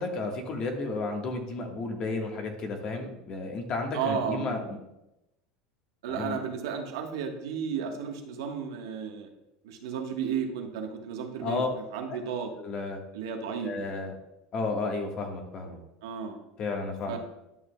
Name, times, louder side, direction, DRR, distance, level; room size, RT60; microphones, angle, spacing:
voice 1, 0.0-4.8 6.1-6.4 11.4-11.7 12.1-12.2 12.6-13.0 13.6-14.1 14.5-15.8 16.6-17.2, left 3 dB, 40° left, 3 dB, 1.4 m, -32 dB
voice 2, 3.9-4.6 6.0-9.3 9.6-12.5 13.1-13.7 16.0-16.4 17.1-17.2, right 7 dB, 85° right, 3 dB, 1.2 m, -33 dB
11.0 x 6.1 x 2.2 m, 0.91 s
supercardioid pair, 125°, 2 cm